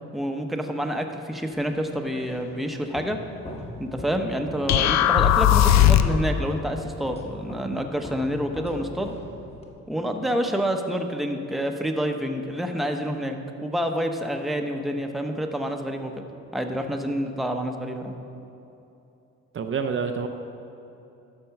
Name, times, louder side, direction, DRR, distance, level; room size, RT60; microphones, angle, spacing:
voice 1, 0.1-3.2 3.8-9.1 9.9-16.1 16.5-18.2, equal, ahead, 4 dB, 0.8 m, -28 dB
sound 1, 1.7-9.8, left 1 dB, 20° left, 1.2 m, -41 dB
sound 2, 4.7-6.3, left 11 dB, 65° left, 0.5 m, -17 dB
voice 2, 19.5-20.3, right 5 dB, 45° right, 6 dB, 0.6 m, -28 dB
12.5 x 4.4 x 5.8 m, 2.8 s
cardioid pair, 90°, 30 cm